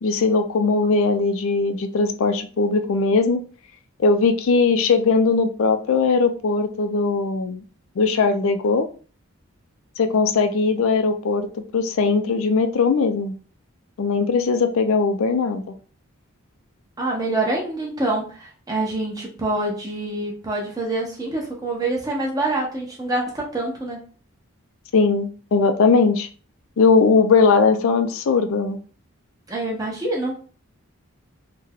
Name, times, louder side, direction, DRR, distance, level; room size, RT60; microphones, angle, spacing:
voice 1, 0.0-3.4 4.0-7.6 8.0-8.9 10.0-11.5 11.7-13.3 14.0-15.6 24.9-26.3 26.8-28.8, left 4 dB, 65° left, 7 dB, 0.4 m, -19 dB
voice 2, 17.0-24.0 29.5-30.4, right 2 dB, 15° right, -2 dB, 0.8 m, -26 dB
3.3 x 2.2 x 3.5 m, 0.39 s
head